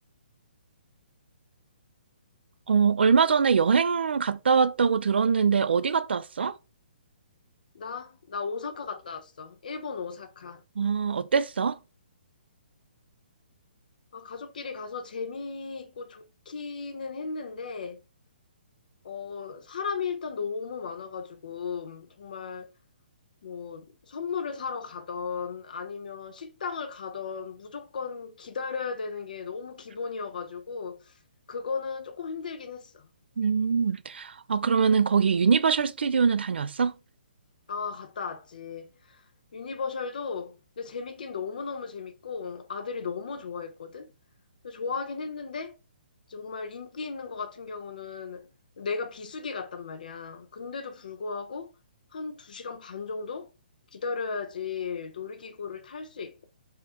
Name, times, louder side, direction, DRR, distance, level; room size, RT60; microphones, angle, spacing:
voice 1, 2.7-6.6 10.8-11.8 33.4-36.9, right 6 dB, 85° right, 0.4 m, -23 dB
voice 2, 7.7-10.6 14.1-18.0 19.0-22.7 23.4-31.1 31.5-33.1 37.7-39.2 39.5-44.1 44.6-45.8 46.3-48.5 48.8-51.7 52.1-53.5 53.9-56.5, left 5 dB, 50° left, 0.7 m, -36 dB
3.7 x 2.1 x 4.3 m
hypercardioid pair, 175°, 6 cm